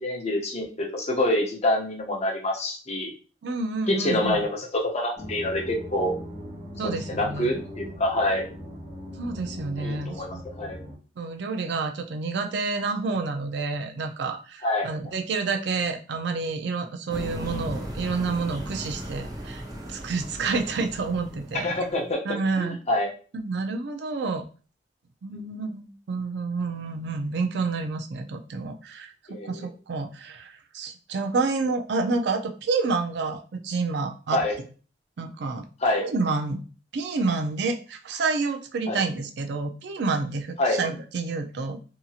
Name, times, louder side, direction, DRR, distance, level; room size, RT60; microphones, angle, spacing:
voice 1, 0.0-3.1 3.9-6.1 6.8-8.4 9.8-10.3 10.6-10.8 14.6-14.9 21.6-22.2 22.6-23.1 25.3-25.4 29.3-29.7 34.3-34.5 35.8-36.0 38.9-39.0 40.6-40.8, left 1 dB, 35° left, 0 dB, 0.7 m, -26 dB
voice 2, 3.4-4.4 6.8-7.6 9.2-10.4 11.2-19.6 19.9-21.7 22.2-22.8 23.3-24.5 25.2-29.1 29.4-34.4 35.2-35.6 36.0-36.6 36.9-41.8, right 4 dB, 65° right, 5 dB, 0.4 m, -29 dB
sound 1, 5.2-10.9, equal, 35° right, 1.1 m, -40 dB
sound 2, 17.1-22.0, equal, 20° right, 0.6 m, -37 dB
2.8 x 2.6 x 2.4 m, 0.37 s
head